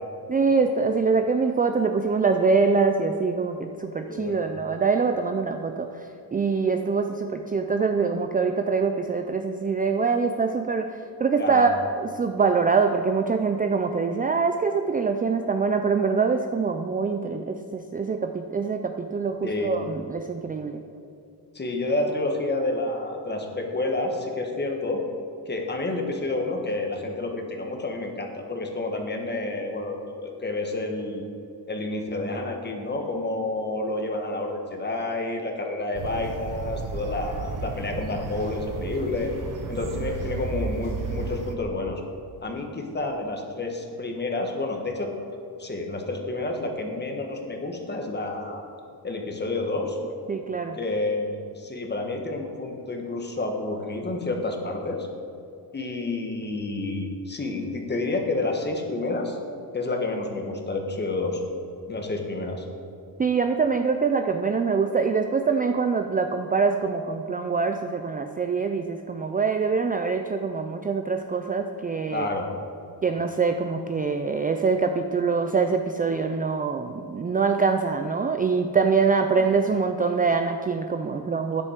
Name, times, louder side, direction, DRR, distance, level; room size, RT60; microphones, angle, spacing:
voice 1, 0.3-6.0 6.3-20.8 50.3-50.8 63.2-72.3 73.0-81.6, right 5 dB, 20° right, 6 dB, 0.4 m, -24 dB
voice 2, 4.1-4.5 11.4-11.7 19.4-20.0 21.5-25.0 25.5-31.2 31.7-39.3 39.7-42.0 42.4-45.1 45.6-48.6 49.0-50.0 50.7-55.1 55.7-59.4 59.7-61.4 61.9-62.6 72.1-72.5, left 2 dB, 25° left, 2 dB, 1.5 m, -29 dB
sound 1, 35.9-41.5, right 3 dB, 50° right, 1.0 m, -33 dB
12.0 x 9.8 x 4.5 m, 2.7 s
wide cardioid pair, 145°, 42 cm